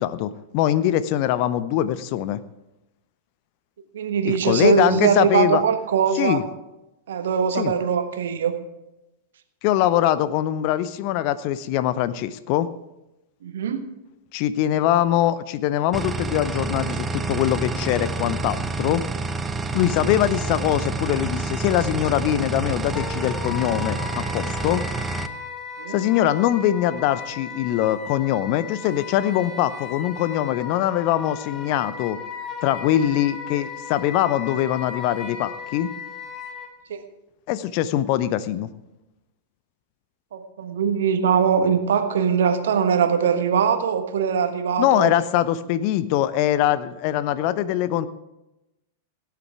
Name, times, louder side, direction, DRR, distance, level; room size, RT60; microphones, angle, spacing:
voice 1, 0.0-2.4 4.2-5.6 6.2-6.4 7.6-7.7 9.6-12.7 14.3-19.0 19.7-24.8 25.9-32.2 32.6-35.9 37.5-38.7 44.8-48.1, left 12 dB, 45° left, 15 dB, 0.6 m, -22 dB
voice 2, 3.9-6.4 7.1-8.5 13.4-13.9 25.8-26.0 36.9-37.0 40.3-45.1, right 7 dB, 60° right, 8 dB, 1.3 m, -21 dB
sound 1, 15.9-25.3, right 3 dB, 15° right, 0.7 m, -28 dB
Wind instrument woodwind instrument, 22.9-36.7, left 6 dB, 25° left, 1.7 m, -36 dB
17.5 x 9.3 x 4.6 m, 0.94 s
figure-of-eight pair, 95°, 0 cm